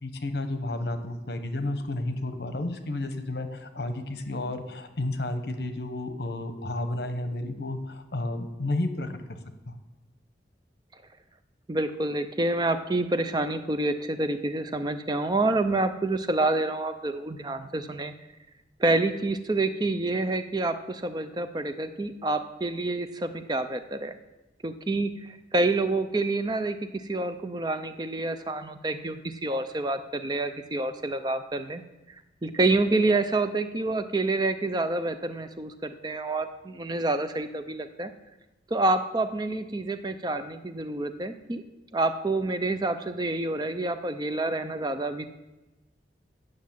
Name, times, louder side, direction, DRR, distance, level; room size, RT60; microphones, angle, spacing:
voice 1, 0.0-9.1 9.7-9.8, left 2 dB, 60° left, 8 dB, 1.0 m, -31 dB
voice 2, 11.7-18.1 18.8-24.1 24.6-31.8 32.4-38.1 38.7-41.6 41.9-45.3, right 2 dB, 25° right, 9 dB, 0.5 m, -28 dB
9.4 x 6.3 x 7.5 m, 1.0 s
head